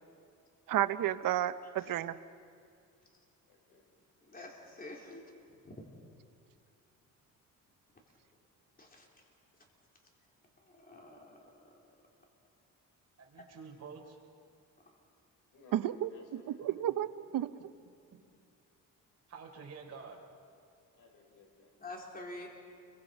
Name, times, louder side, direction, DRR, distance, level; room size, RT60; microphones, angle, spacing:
voice 1, 0.7-2.2 15.7-17.1 17.3-17.5, right 12 dB, 70° right, 12 dB, 0.9 m, -32 dB
voice 2, 3.5-3.8 15.5-16.9 20.9-21.7, left 3 dB, 65° left, 0 dB, 5.7 m, -60 dB
voice 3, 4.2-5.7 8.8-9.1 10.7-11.8 21.8-22.5, left 2 dB, 25° left, 0 dB, 4.0 m, -48 dB
voice 4, 13.2-14.2 16.6-16.7 18.1-18.2 19.3-20.2, right 5 dB, 45° right, 1 dB, 4.0 m, -49 dB
30.0 x 23.5 x 5.3 m, 2.4 s
cardioid pair, 115°, 34 cm